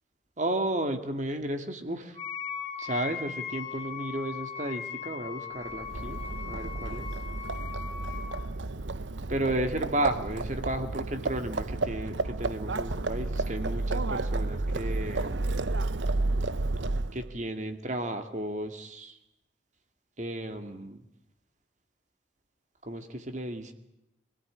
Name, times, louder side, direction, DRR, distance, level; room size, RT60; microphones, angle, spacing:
voice 1, 0.4-2.2 2.8-7.1 9.3-15.5 17.1-19.2 20.2-21.0 22.8-23.7, right 1 dB, 40° right, 7 dB, 2.1 m, -33 dB
Wind instrument woodwind instrument, 2.1-8.5, left 7 dB, 30° left, 2.5 m, -39 dB
Livestock farm animals working animals, 5.7-17.3, right 2 dB, 70° right, 0.9 m, -31 dB
25.5 x 17.5 x 9.9 m, 0.88 s
head